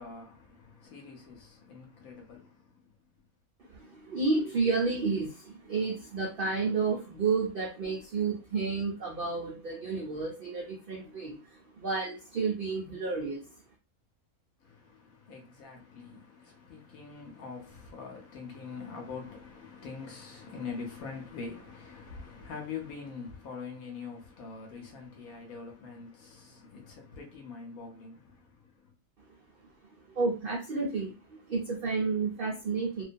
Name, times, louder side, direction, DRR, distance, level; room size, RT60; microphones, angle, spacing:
voice 1, 0.0-3.1 14.6-28.9, left 5 dB, 75° left, 1.1 m, -44 dB
voice 2, 3.6-13.5 30.1-33.0, right 4 dB, 90° right, 0.4 m, -31 dB
2.4 x 2.2 x 2.5 m
omnidirectional pair, 1.6 m